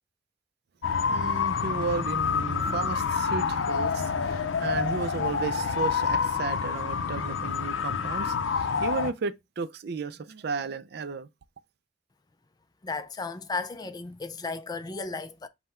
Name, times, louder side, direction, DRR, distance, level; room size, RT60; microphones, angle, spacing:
sound 1, 0.8-9.1, left 6 dB, 90° left, 0.5 m, -28 dB
voice 1, 1.1-11.3, right 4 dB, 55° right, 0.4 m, -34 dB
voice 2, 12.8-15.5, left 3 dB, 20° left, 0.4 m, -34 dB
5.6 x 2.2 x 4.2 m
head